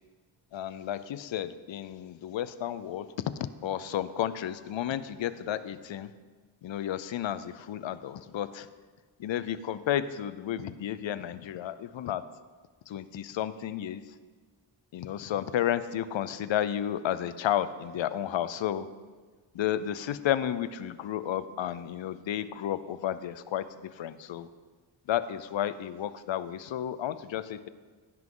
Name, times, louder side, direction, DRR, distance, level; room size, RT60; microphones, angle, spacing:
voice 1, 0.5-3.1 3.6-6.1 6.6-8.7 9.2-12.3 12.9-14.0 14.9-18.9 19.5-24.5 25.1-27.7, left 11 dB, 70° left, 14 dB, 0.6 m, -32 dB
15.5 x 5.9 x 3.8 m, 1.4 s
cardioid pair, 75°, 48 cm